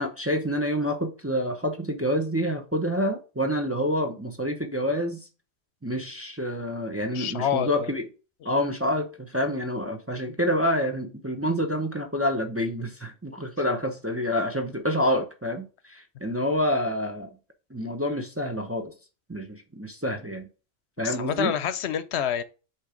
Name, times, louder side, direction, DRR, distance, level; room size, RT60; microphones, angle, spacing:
voice 1, 0.0-5.3 5.8-8.1 8.4-17.3 17.7-18.9 19.3-20.5 21.0-21.5, equal, 15° right, 0.6 m, -27 dB
voice 2, 7.1-7.9 8.4-8.5 21.0-22.4, left 9 dB, 80° left, 0.9 m, -28 dB
7.8 x 3.0 x 4.9 m
omnidirectional pair, 1.1 m